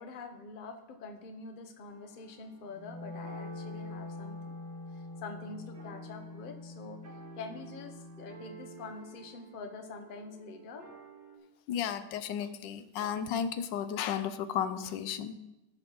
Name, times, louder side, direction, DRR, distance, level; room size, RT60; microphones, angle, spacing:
voice 1, 0.0-4.6 4.9-7.0 7.4-10.9, left 4 dB, 40° left, 5 dB, 0.8 m, -45 dB
sound 1, 1.8-11.4, right 5 dB, 40° right, 1.8 m, -54 dB
Wind instrument woodwind instrument, 2.7-9.0, left 3 dB, 15° left, 1.4 m, -45 dB
voice 2, 11.7-15.3, left 8 dB, 90° left, 12 dB, 1.4 m, -33 dB
13.0 x 4.7 x 5.4 m, 0.95 s
omnidirectional pair, 1.9 m